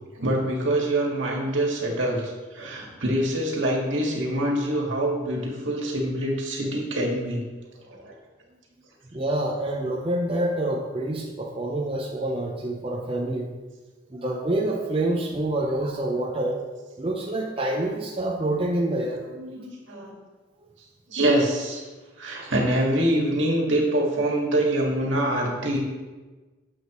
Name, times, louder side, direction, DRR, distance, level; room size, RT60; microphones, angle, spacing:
voice 1, 0.2-7.5 7.9-8.1 19.3-20.2 21.1-21.8 22.2-25.8, right 1 dB, 75° right, -1 dB, 2.0 m, -25 dB
voice 2, 9.1-13.6 14.1-16.6 17.0-19.2, right 1 dB, 30° right, -1 dB, 0.7 m, -27 dB
10.0 x 7.3 x 3.1 m, 1.3 s
head